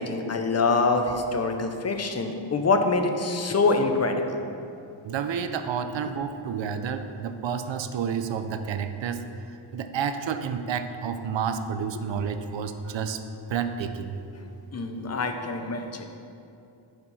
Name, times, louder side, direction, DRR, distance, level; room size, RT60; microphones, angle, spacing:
voice 1, 0.0-4.4 12.9-13.0 14.4-16.0, left 3 dB, 35° left, 5 dB, 0.7 m, -25 dB
voice 2, 5.0-9.2 9.7-13.2 13.5-14.2, right 7 dB, 70° right, 8 dB, 0.6 m, -30 dB
10.5 x 4.5 x 4.1 m, 2.6 s
wide cardioid pair, 80°, 46 cm